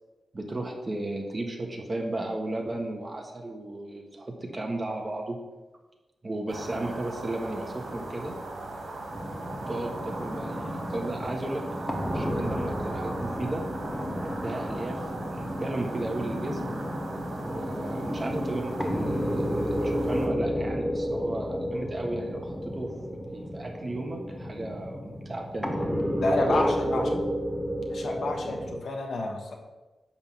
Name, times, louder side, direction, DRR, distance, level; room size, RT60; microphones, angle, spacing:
voice 1, 0.3-5.4 6.2-8.3 9.7-11.6 12.1-13.6 14.4-16.6 17.4-22.9 23.3-25.9 26.5-27.2, right 1 dB, 30° right, 1 dB, 1.4 m, -34 dB
sound 1, 6.5-20.3, right 2 dB, 85° right, 2.1 m, -38 dB
sound 2, 9.1-28.8, equal, 5° left, 1.2 m, -32 dB
voice 2, 26.2-27.1 27.9-29.6, left 2 dB, 75° left, 2 dB, 1.3 m, -29 dB
10.5 x 3.8 x 7.4 m, 1.1 s
wide cardioid pair, 130°, 0 cm